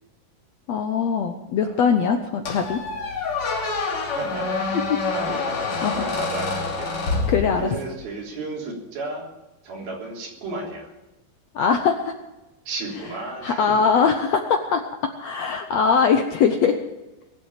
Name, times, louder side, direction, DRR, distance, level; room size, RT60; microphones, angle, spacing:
voice 1, 0.7-2.8 5.8-5.9 7.3-7.7 11.5-12.1 13.4-14.8 15.2-16.8, left 6 dB, 75° left, 6 dB, 1.6 m, -21 dB
Squeak, 2.5-8.0, left 3 dB, 40° left, 3.4 m, -27 dB
voice 2, 3.8-4.8 5.1-5.4 5.9-6.9 7.6-9.3 9.6-10.9 12.7-13.8, right 2 dB, 90° right, -2 dB, 5.4 m, -33 dB
22.0 x 7.9 x 7.4 m, 1.0 s
omnidirectional pair, 4.2 m